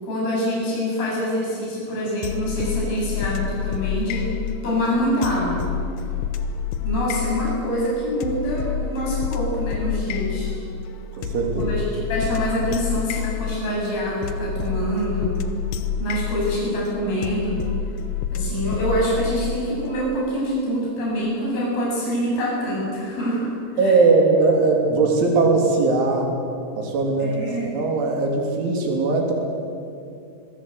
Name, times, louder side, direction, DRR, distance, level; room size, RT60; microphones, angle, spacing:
voice 1, 0.0-4.4 4.6-5.7 6.8-10.5 11.6-11.8 12.1-15.4 16.0-17.6 18.3-24.0 27.2-27.8, equal, 50° left, -5 dB, 9.8 m, -25 dB
sound 1, 2.2-20.0, left 6 dB, 75° left, 1.9 m, -28 dB
voice 2, 11.1-11.7 23.8-26.3 26.8-27.4 27.7-29.3, right 3 dB, 85° right, 2 dB, 5.7 m, -19 dB
26.5 x 22.0 x 8.1 m, 2.6 s
omnidirectional pair, 5.3 m